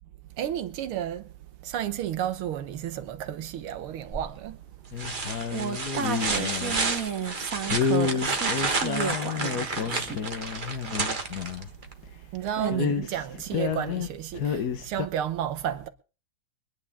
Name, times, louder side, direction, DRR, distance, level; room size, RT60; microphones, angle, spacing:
voice 1, 0.4-1.3 1.6-4.7 12.3-15.9, right 10 dB, 80° right, 2.0 m, -32 dB
sound 1, 4.1-4.5 5.0-11.9 13.7-13.8, right 3 dB, 30° right, 1.2 m, -31 dB
sound 2, 4.9-6.8 7.7-11.7 12.0-12.1 12.4-14.1 14.3-15.1, left 6 dB, 55° left, 1.4 m, -30 dB
voice 2, 5.5-10.2 12.6-12.9, right 6 dB, 45° right, 1.3 m, -32 dB
24.0 x 10.0 x 3.5 m
omnidirectional pair, 2.4 m